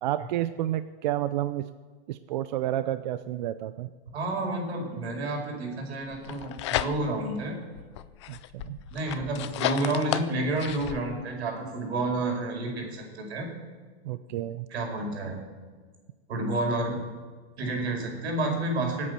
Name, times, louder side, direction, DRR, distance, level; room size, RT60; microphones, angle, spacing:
voice 1, 0.0-1.6 2.1-3.9 8.3-8.8 14.0-14.7, right 13 dB, 45° right, 13 dB, 0.5 m, -30 dB
voice 2, 4.1-7.6 8.9-13.5 14.7-15.4 16.3-17.0 17.6-19.1, right 2 dB, 80° right, 2 dB, 5.3 m, -30 dB
sound 1, 6.1-7.3 7.8-11.0, left 13 dB, 30° left, 0.4 m, -33 dB
25.0 x 8.5 x 6.8 m, 1.5 s
supercardioid pair, 165°, 32 cm